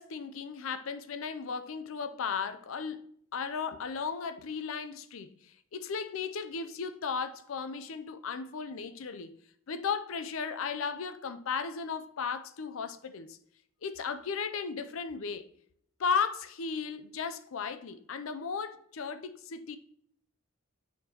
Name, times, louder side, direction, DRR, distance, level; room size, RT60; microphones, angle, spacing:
voice 1, 0.0-3.1 3.3-5.3 5.7-9.3 9.7-13.4 13.8-15.5 16.0-19.8, left 6 dB, 70° left, 0.5 m, -35 dB
9.3 x 4.3 x 2.9 m
head